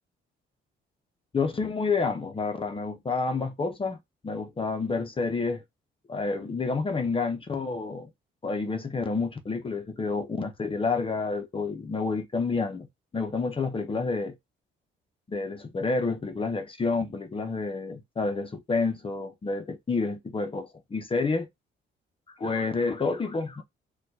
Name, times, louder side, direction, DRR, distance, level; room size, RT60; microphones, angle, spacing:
voice 1, 1.3-4.0 4.2-5.6 6.1-8.1 8.4-12.9 13.1-14.4 15.3-21.5 22.4-23.6, left 4 dB, 25° left, 0.6 m, -29 dB
4.2 x 2.2 x 2.6 m
cardioid pair, 90°, 20 cm